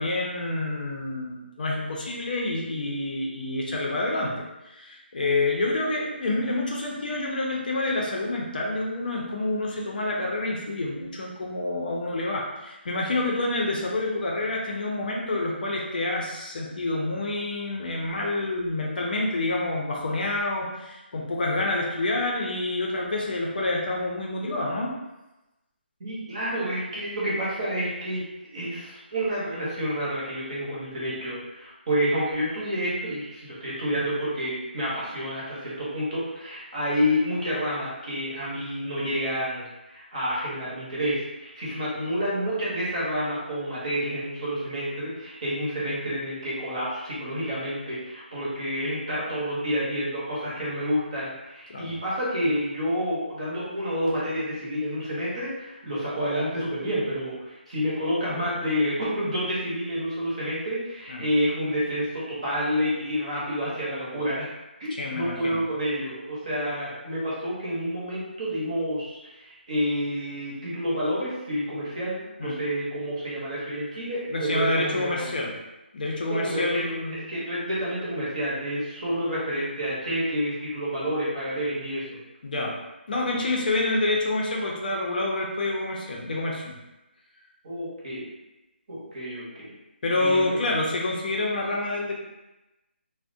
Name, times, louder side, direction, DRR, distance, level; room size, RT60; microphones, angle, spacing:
voice 1, 0.0-4.3 4.6-24.9 51.7-51.9 61.1-61.3 65.0-65.6 72.4-72.6 74.3-75.5 75.9-77.2 82.4-82.8 83.1-86.8 90.0-92.2, left 2 dB, 50° left, -2 dB, 0.5 m, -28 dB
voice 2, 26.0-28.3 28.5-64.5 64.8-75.3 76.3-82.1 87.6-88.3 88.9-89.7 90.1-90.6, equal, 35° right, -7 dB, 0.8 m, -29 dB
2.4 x 2.0 x 2.6 m, 0.99 s
hypercardioid pair, 170°, 6 cm